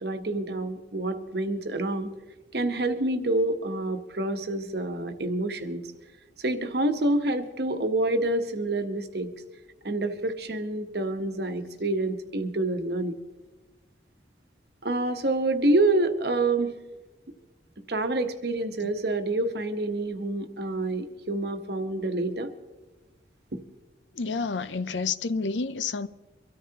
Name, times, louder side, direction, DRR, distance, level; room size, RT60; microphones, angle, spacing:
voice 1, 0.0-2.1 2.5-5.9 6.4-9.3 9.8-13.1 14.8-16.7 17.9-22.5, right 2 dB, 60° right, 1.1 m, -27 dB
voice 2, 24.1-26.1, left 4 dB, 75° left, 0.6 m, -29 dB
24.0 x 13.5 x 2.9 m
head